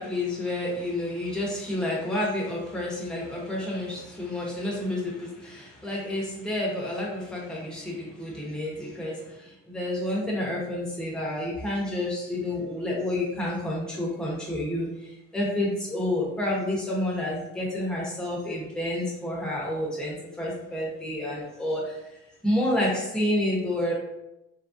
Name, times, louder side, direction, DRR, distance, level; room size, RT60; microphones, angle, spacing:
voice 1, 0.0-5.3 5.5-9.1 9.7-14.9 15.3-21.8 22.4-23.9, left 1 dB, ahead, -5 dB, 0.9 m, -29 dB
3.2 x 2.4 x 2.6 m, 0.90 s
cardioid pair, 120°, 35 cm